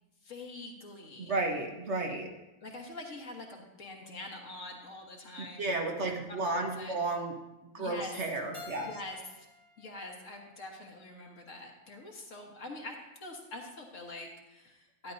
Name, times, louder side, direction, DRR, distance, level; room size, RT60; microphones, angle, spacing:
voice 1, 0.2-1.3 2.6-5.8 6.3-7.0 7.8-8.3 8.8-9.5 9.8-15.1, left 2 dB, 60° left, 1 dB, 1.7 m, -45 dB
voice 2, 1.2-2.3 5.6-7.3 7.7-8.9, right 2 dB, 55° right, 2 dB, 1.3 m, -32 dB
Keyboard (musical), 8.5-11.4, left 2 dB, 25° left, 1.2 m, -52 dB
12.5 x 10.0 x 2.6 m, 0.99 s
omnidirectional pair, 1.6 m